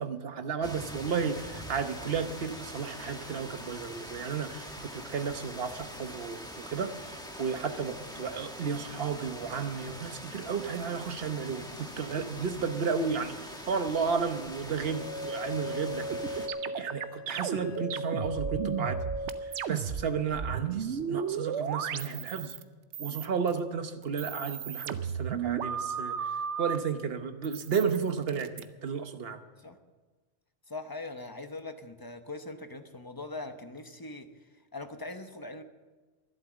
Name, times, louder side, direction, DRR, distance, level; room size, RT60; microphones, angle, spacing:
voice 1, 0.0-19.0 19.4-22.5 23.0-26.2 26.6-29.4, right 6 dB, 55° right, 8 dB, 1.2 m, -33 dB
sound 1, 0.6-16.5, equal, 5° left, 1.3 m, -44 dB
sound 2, 14.8-19.7, equal, 65° left, 1.2 m, -38 dB
sound 3, 16.1-20.1 20.3-22.6 22.9-23.6 24.0-26.8 27.4-28.6, right 8 dB, 75° right, 1.0 m, -34 dB
voice 2, 30.7-34.3 34.7-35.6, left 2 dB, 20° left, 7 dB, 0.8 m, -41 dB
12.0 x 11.5 x 7.4 m, 1.3 s
omnidirectional pair, 1.2 m